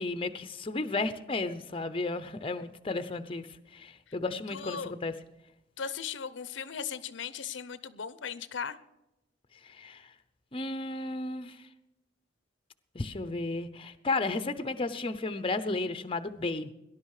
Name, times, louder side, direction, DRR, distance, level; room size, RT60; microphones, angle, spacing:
voice 1, 0.0-3.5 3.7-5.1 9.6-10.1 10.5-11.6 12.9-16.7, left 3 dB, 30° left, 11 dB, 0.8 m, -33 dB
voice 2, 4.5-4.9 5.8-8.8, left 7 dB, 70° left, 15 dB, 0.7 m, -37 dB
18.5 x 11.0 x 4.9 m, 0.92 s
head